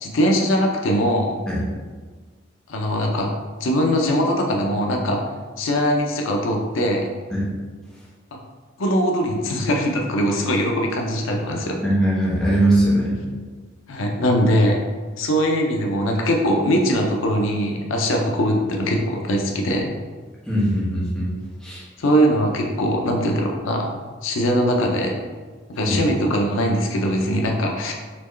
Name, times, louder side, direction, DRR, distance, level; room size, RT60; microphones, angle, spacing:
voice 1, 0.0-1.4 2.7-3.3 3.6-5.2 5.6-7.1 8.3-8.4 8.8-11.8 13.9-14.8 15.2-19.9 22.0-23.9 24.2-25.2 25.7-27.9, equal, 85° left, 1 dB, 0.6 m, -21 dB
voice 2, 11.8-13.1 20.5-21.3 21.6-21.8 25.8-26.0, right 1 dB, 5° left, -9 dB, 1.1 m, -20 dB
4.3 x 3.0 x 3.1 m, 1.4 s
head